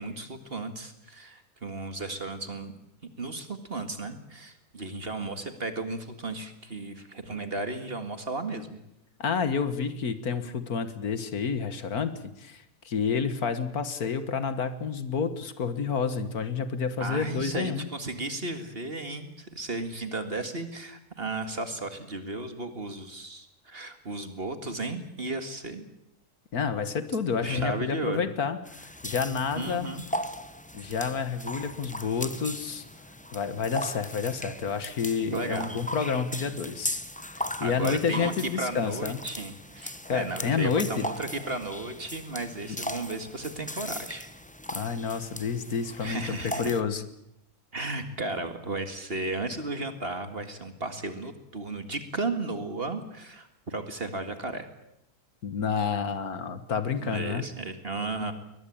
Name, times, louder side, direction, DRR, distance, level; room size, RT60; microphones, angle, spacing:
voice 1, 0.0-2.7 3.2-8.8 17.0-25.9 27.4-28.3 29.6-30.0 35.3-35.8 37.6-44.3 46.0-46.7 47.7-54.7 57.0-58.3, right 2 dB, 40° right, 8 dB, 2.1 m, -34 dB
voice 2, 9.2-12.1 12.4-17.9 26.5-29.9 30.7-32.8 33.3-39.2 40.1-41.1 42.7-42.8 44.7-46.2 46.6-47.0 55.4-57.5, left 6 dB, 70° left, 11 dB, 1.9 m, -29 dB
sound 1, 28.6-46.8, left 1 dB, 5° left, 0.8 m, -38 dB
22.0 x 20.0 x 8.6 m, 0.80 s
omnidirectional pair, 1.6 m